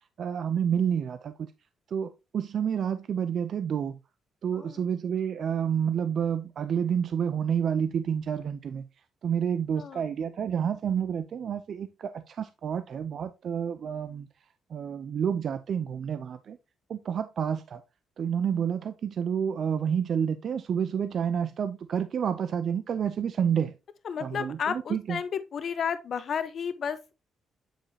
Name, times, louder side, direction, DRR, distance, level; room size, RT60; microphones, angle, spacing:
voice 1, 0.2-1.5 1.9-4.0 4.4-8.9 9.2-14.3 14.7-16.6 16.9-17.8 18.2-23.7 24.2-25.2, right 8 dB, 60° right, 0.5 m, -29 dB
voice 2, 4.5-4.9 9.8-10.0 24.0-27.1, left 7 dB, 55° left, 0.9 m, -32 dB
8.9 x 4.9 x 2.8 m
cardioid pair, 90°, 0 cm